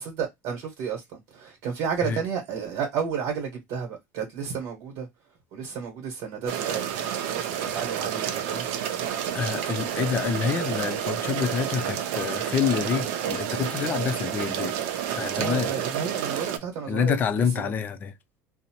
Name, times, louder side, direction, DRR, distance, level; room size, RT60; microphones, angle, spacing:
voice 1, 0.0-5.1 5.5-8.7 15.3-17.7, right 6 dB, 65° right, 1.0 m, -32 dB
sound 1, 6.5-16.6, right 9 dB, 85° right, 0.5 m, -30 dB
voice 2, 9.3-14.8 15.2-15.7 16.9-18.1, left 7 dB, 30° left, 0.4 m, -27 dB
2.6 x 2.0 x 2.8 m
cardioid pair, 150°, 6 cm